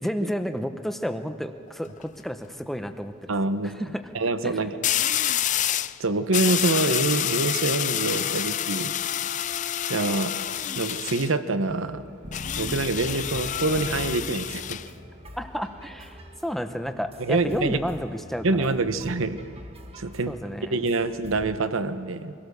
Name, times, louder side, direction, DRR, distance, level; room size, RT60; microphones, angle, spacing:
voice 1, 0.0-3.3 3.6-4.0 4.4-4.6 15.3-18.8 20.3-20.8, equal, ahead, 8 dB, 0.8 m, -31 dB
sound 1, 1.7-2.0 4.8-6.0 6.3-11.3 12.3-14.9, left 11 dB, 40° left, 0.4 m, -28 dB
voice 2, 3.3-3.7 4.1-4.8 6.0-8.9 9.9-10.3 10.7-12.1 12.6-14.8 17.2-17.8 18.4-19.4 20.0-20.3 20.7-22.3, right 3 dB, 70° right, 11 dB, 1.0 m, -25 dB
sound 2, 11.7-21.6, equal, 30° right, 1.6 m, -42 dB
24.0 x 16.5 x 6.7 m, 2.4 s
head